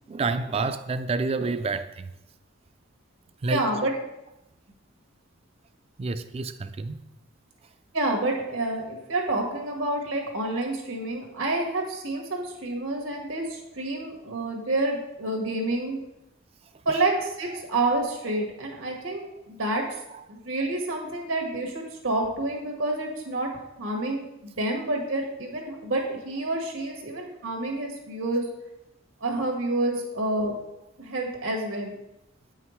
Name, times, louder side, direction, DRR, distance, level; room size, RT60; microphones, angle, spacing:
voice 1, 0.1-2.1 3.4-3.7 6.0-7.0 30.0-30.1, right 3 dB, 30° right, 0.3 m, -29 dB
voice 2, 3.5-3.9 7.9-16.0 16.8-19.8 20.3-23.5 23.8-28.5 29.2-30.5 31.0-31.9, right 2 dB, 85° right, 1.6 m, -28 dB
8.8 x 5.7 x 3.1 m
head